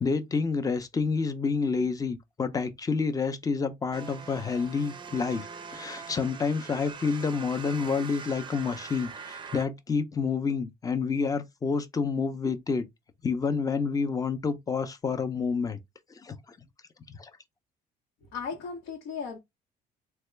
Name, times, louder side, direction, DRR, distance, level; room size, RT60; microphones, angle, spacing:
voice 1, 0.0-12.9 13.2-15.8 16.2-16.6 17.1-17.3, left 5 dB, 20° left, 0.6 m, -29 dB
sound 1, 3.9-9.7, right 6 dB, 30° right, 0.5 m, -43 dB
voice 2, 18.3-19.4, left 5 dB, 85° left, 1.0 m, -36 dB
3.4 x 2.2 x 3.2 m
cardioid pair, 110°, 17 cm